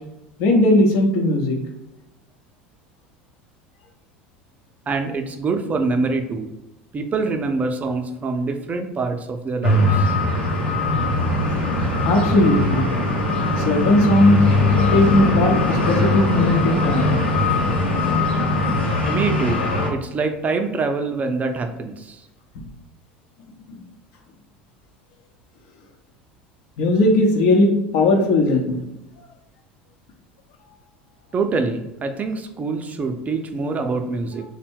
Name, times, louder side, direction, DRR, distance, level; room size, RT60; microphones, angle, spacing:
voice 1, 0.4-1.6 12.0-12.9 13.6-14.4 14.9-17.2 22.5-22.6 23.7-23.8 26.8-28.9, left 1 dB, 55° left, 2 dB, 0.8 m, -18 dB
voice 2, 4.9-6.5 6.9-10.1 19.1-22.2 31.3-34.4, right 3 dB, 25° right, 5 dB, 0.5 m, -25 dB
sound 1, 9.6-19.9, left 2 dB, 85° left, 0.8 m, -20 dB
3.4 x 2.2 x 4.4 m, 0.94 s
figure-of-eight pair, 75°, 6 cm